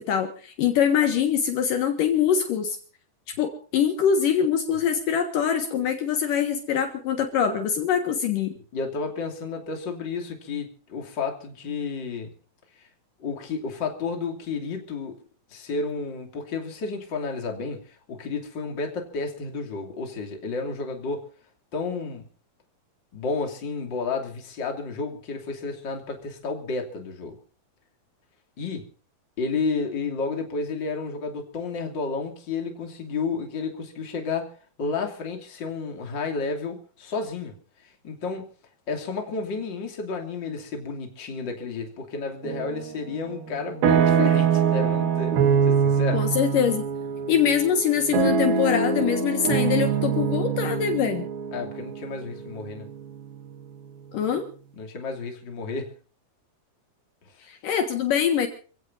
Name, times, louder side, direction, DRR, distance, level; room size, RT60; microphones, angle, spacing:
voice 1, 0.0-2.8 3.3-8.5 46.1-46.9 47.3-51.3 54.1-54.5 57.5-58.5, left 8 dB, 70° left, 3.1 m, -23 dB
voice 2, 8.7-12.3 12.7-12.9 13.2-15.2 15.5-21.3 21.7-22.2 23.1-27.4 28.6-28.9 29.4-34.5 34.8-37.6 37.8-38.5 38.9-45.4 45.7-46.2 51.5-52.9 54.8-55.9, left 4 dB, 35° left, 3.2 m, -31 dB
sound 1, 42.4-43.0 43.4-53.4, right 7 dB, 85° right, 3.6 m, -24 dB
27.5 x 16.5 x 2.7 m
omnidirectional pair, 4.1 m